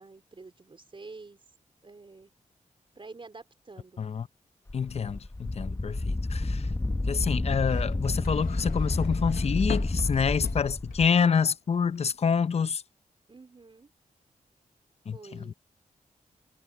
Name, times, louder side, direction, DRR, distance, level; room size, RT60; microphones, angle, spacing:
voice 1, 0.0-1.4 1.8-2.3 3.0-4.0 13.3-13.9 15.1-15.5, right 3 dB, 40° right, 3.8 m, -48 dB
voice 2, 4.7-6.7 7.1-12.8 15.1-15.2 15.5-15.6, left 6 dB, 45° left, 0.6 m, -27 dB
Wind, 4.7-11.1, left 2 dB, 20° left, 0.9 m, -30 dB
sound 1, 7.3-11.4 11.7-12.3, left 8 dB, 85° left, 1.1 m, -42 dB
cardioid pair, 80°, 14 cm